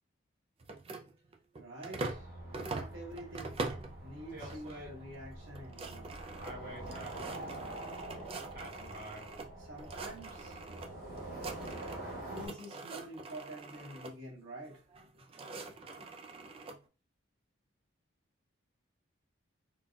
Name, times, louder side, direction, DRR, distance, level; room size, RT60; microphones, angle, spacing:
sound 1, 0.6-2.3 2.5-3.9 4.4-4.8 5.1-5.2 5.5-9.5 9.8-10.9 11.2-12.1 12.4-14.1 14.9-16.8, right 3 dB, 30° right, 0.3 m, -43 dB
voice 1, 1.6-3.5 4.0-6.1 8.5-8.6 9.6-10.6 12.3-16.5, right 1 dB, 75° right, -3 dB, 1.4 m, -48 dB
sound 2, 2.0-12.5, right 1 dB, 45° right, 1.0 m, -45 dB
3.9 x 2.2 x 2.3 m, 0.33 s
head